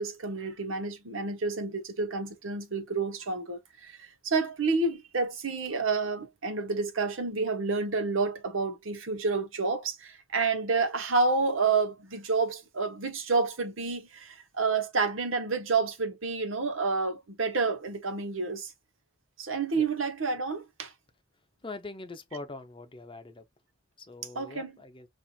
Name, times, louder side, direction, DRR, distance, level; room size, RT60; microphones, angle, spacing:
voice 1, 0.0-18.7 19.4-20.9 24.3-24.7, right 4 dB, 75° right, 1.1 m, -29 dB
voice 2, 21.6-23.4 24.0-25.1, left 3 dB, 25° left, 0.7 m, -42 dB
5.7 x 2.6 x 2.4 m
head